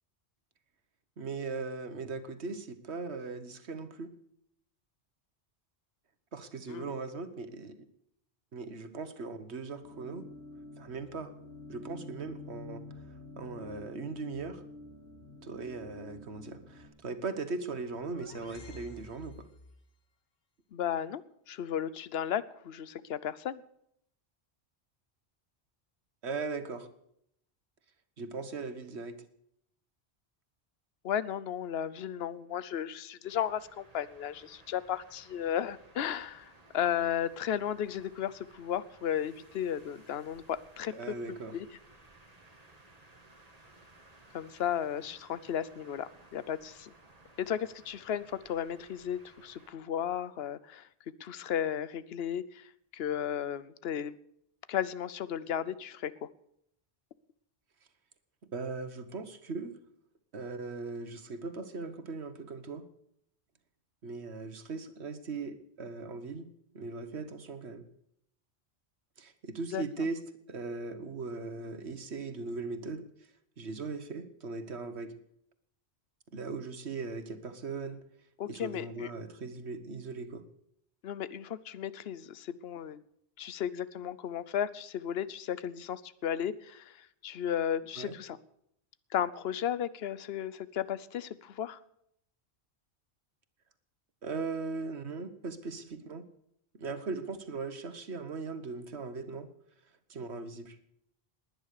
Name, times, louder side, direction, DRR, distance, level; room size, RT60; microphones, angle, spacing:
voice 1, 1.2-4.1 6.3-7.8 8.5-10.2 10.8-11.3 11.7-12.8 13.4-14.6 15.4-19.5 26.2-26.9 28.2-29.2 40.9-41.6 58.5-59.8 60.3-62.9 64.0-66.5 66.7-67.9 69.2-70.2 70.5-73.1 73.6-75.2 76.3-78.0 78.5-80.5 88.0-88.1 94.2-96.3 96.7-99.5 100.1-100.8, right 4 dB, 85° right, 11 dB, 1.6 m, -39 dB
sound 1, 9.8-16.9, left 2 dB, 15° right, 6.7 m, -48 dB
sound 2, 17.6-19.9, left 2 dB, 45° left, 1.3 m, -51 dB
voice 2, 20.7-23.6 31.0-40.9 41.5-41.7 44.3-46.9 47.4-50.9 51.2-52.7 52.9-54.2 54.7-56.3 69.7-69.8 78.4-79.1 81.0-83.0 83.4-88.4 89.1-91.8, left 9 dB, 70° left, 17 dB, 1.0 m, -34 dB
sound 3, 33.2-49.7, right 2 dB, 35° right, 2.1 m, -59 dB
19.5 x 9.7 x 6.7 m, 0.73 s
omnidirectional pair, 1.1 m